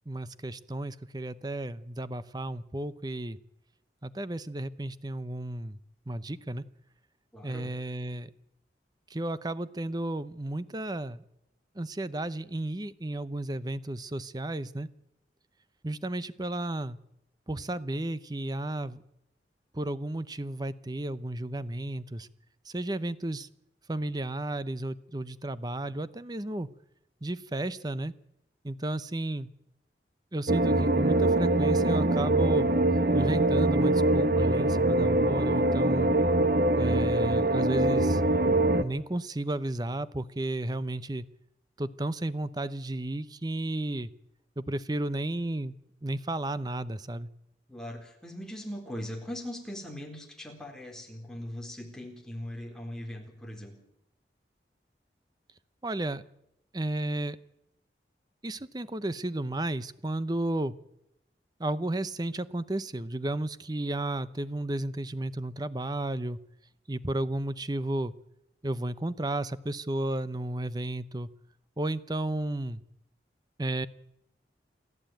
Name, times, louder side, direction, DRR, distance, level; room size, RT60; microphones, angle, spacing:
voice 1, 0.1-3.4 4.0-5.8 6.1-6.6 7.4-8.3 9.1-11.2 11.8-14.9 15.8-17.0 17.5-19.0 19.7-22.3 22.7-23.5 23.9-26.7 27.2-28.1 28.6-29.5 30.3-32.7 33.1-36.1 36.8-38.2 38.7-41.3 41.8-44.1 44.6-45.7 46.0-47.3 55.8-56.2 56.7-57.4 58.4-60.7 61.6-66.4 66.9-68.1 68.6-71.3 71.8-72.8 73.6-73.9, right 1 dB, 25° right, 15 dB, 0.7 m, -33 dB
voice 2, 7.3-7.7 37.1-37.3 47.7-53.7, equal, 5° left, 1 dB, 3.8 m, -40 dB
sound 1, 30.5-38.8, right 2 dB, 55° right, 1.2 m, -24 dB
28.5 x 12.5 x 9.2 m, 0.81 s
head